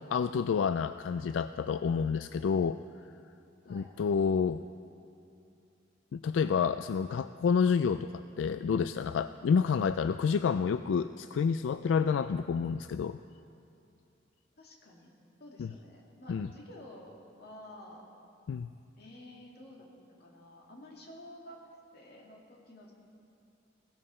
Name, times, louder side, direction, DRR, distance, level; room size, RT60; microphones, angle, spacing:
voice 1, 0.0-2.8 3.7-4.6 6.1-8.1 8.4-13.2 15.6-15.7 16.3-16.5 18.5-18.7, left 6 dB, 80° left, 12 dB, 0.3 m, -29 dB
voice 2, 14.6-15.1 15.4-18.1 19.0-19.9 20.2-21.6 21.9-22.9, left 1 dB, 55° left, -2 dB, 2.3 m, -51 dB
16.5 x 16.5 x 4.3 m, 2.7 s
head